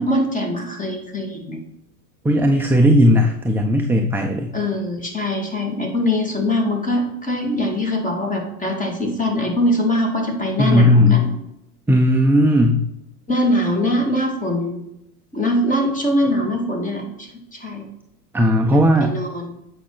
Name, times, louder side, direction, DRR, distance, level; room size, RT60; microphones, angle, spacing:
voice 1, 0.0-1.6 4.5-11.3 13.3-14.8 15.3-17.9 18.7-19.6, left 1 dB, 15° left, 2 dB, 2.1 m, -22 dB
voice 2, 2.2-4.5 10.6-11.3 11.9-12.8 18.3-19.1, equal, 5° right, 2 dB, 0.4 m, -16 dB
8.3 x 5.6 x 4.0 m, 0.84 s
hypercardioid pair, 90°, 48 cm